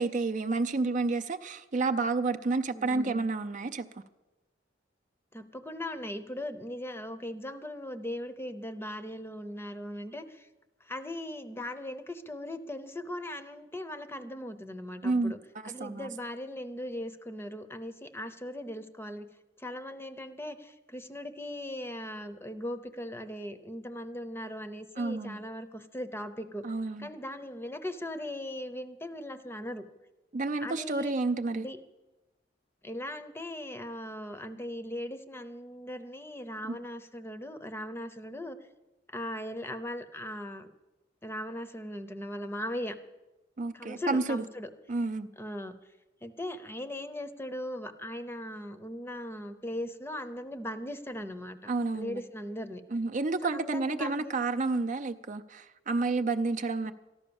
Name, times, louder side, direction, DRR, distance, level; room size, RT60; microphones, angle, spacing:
voice 1, 0.0-3.9 15.0-16.1 25.0-25.4 26.6-27.1 30.3-31.7 36.7-36.8 43.6-44.4 44.9-45.3 51.7-52.2 52.9-56.9, right 3 dB, 45° right, 0.5 m, -30 dB
voice 2, 2.7-3.2 5.3-10.5 10.8-15.4 15.7-19.3 19.6-26.6 27.0-29.9 30.6-31.1 31.5-31.8 32.8-38.6 39.1-40.7 41.2-43.0 43.7-44.7 45.4-45.7 46.2-51.6 51.9-52.8 53.5-54.4 56.8-56.9, left 1 dB, 15° left, 0.7 m, -39 dB
14.5 x 11.5 x 7.0 m
head